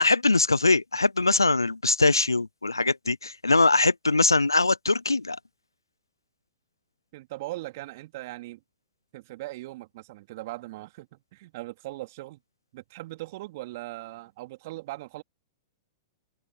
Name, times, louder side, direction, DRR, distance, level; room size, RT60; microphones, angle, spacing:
voice 1, 0.0-5.4, left 3 dB, 90° left, 0.5 m, -22 dB
voice 2, 7.1-8.6 9.1-12.4 12.7-15.2, right 18 dB, 50° right, 3.4 m, -39 dB
open air
figure-of-eight pair, 105°, 2 cm